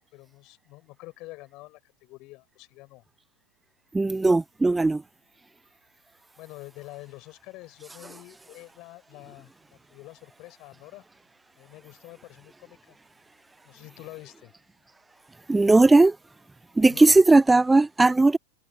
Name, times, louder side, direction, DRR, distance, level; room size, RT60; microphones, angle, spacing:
voice 1, 0.0-3.0 6.4-11.0 11.6-13.0 13.6-14.5 16.8-17.2, left 21 dB, 40° left, 7.7 m, -46 dB
voice 2, 3.9-5.0 15.5-16.2 16.8-18.4, right 2 dB, 10° right, 0.7 m, -18 dB
figure-of-eight pair, 90°, 0 cm